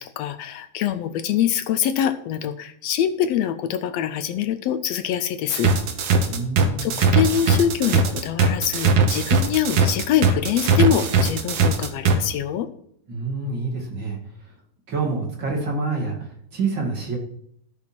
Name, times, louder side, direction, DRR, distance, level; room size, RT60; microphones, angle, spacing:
voice 1, 0.0-5.7 6.8-12.7, left 10 dB, 75° left, 10 dB, 1.6 m, -24 dB
sound 1, 5.5-12.1, right 5 dB, 60° right, 2.0 m, -19 dB
voice 2, 6.3-7.0 13.1-14.2 14.9-17.2, right 3 dB, 40° right, -2 dB, 2.8 m, -27 dB
13.5 x 5.9 x 6.1 m, 0.69 s
omnidirectional pair, 3.4 m